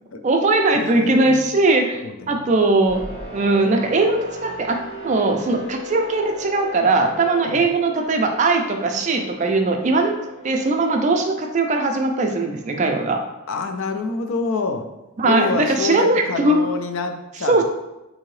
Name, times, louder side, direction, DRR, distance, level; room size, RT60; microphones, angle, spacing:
voice 1, 0.2-2.0 2.3-3.0 3.3-4.8 5.0-10.1 10.4-13.2 15.2-16.6 17.5-17.6, right 2 dB, 35° right, 4 dB, 0.3 m, -19 dB
voice 2, 0.7-1.4 2.0-2.5 7.4-7.6 13.5-14.9 15.2-17.6, left 4 dB, 65° left, 7 dB, 0.4 m, -27 dB
sound 1, 2.9-14.2, left 1 dB, 40° left, 1.2 m, -38 dB
3.7 x 2.7 x 3.1 m, 0.97 s
head